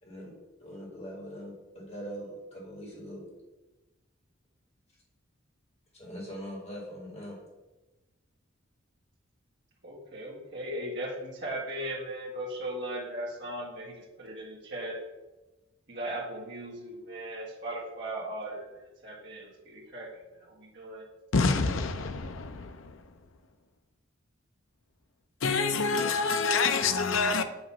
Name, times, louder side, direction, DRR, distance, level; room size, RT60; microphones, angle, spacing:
voice 1, 0.0-3.3 5.9-7.4, equal, 30° left, 2.0 m, -42 dB
voice 2, 9.8-15.0 15.9-20.1 20.4-21.0, right 1 dB, 55° right, 1.7 m, -38 dB
voice 3, 21.3-22.9 25.4-27.4, left 4 dB, 70° left, 0.6 m, -27 dB
7.9 x 3.0 x 5.5 m
head